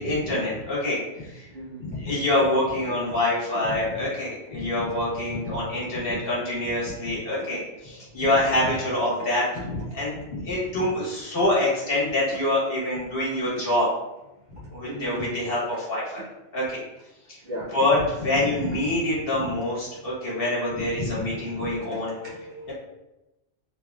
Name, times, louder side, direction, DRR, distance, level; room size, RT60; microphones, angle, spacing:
voice 1, 0.0-1.5 1.8-13.9 14.7-16.2 16.5-16.8 17.3-17.4 17.7-22.1 22.7-22.8, left 1 dB, 50° left, -6 dB, 1.3 m, -26 dB
voice 2, 14.9-15.4 17.4-17.7 21.3-22.7, equal, 55° right, -7 dB, 1.2 m, -37 dB
3.5 x 3.1 x 2.3 m, 0.97 s
omnidirectional pair, 1.2 m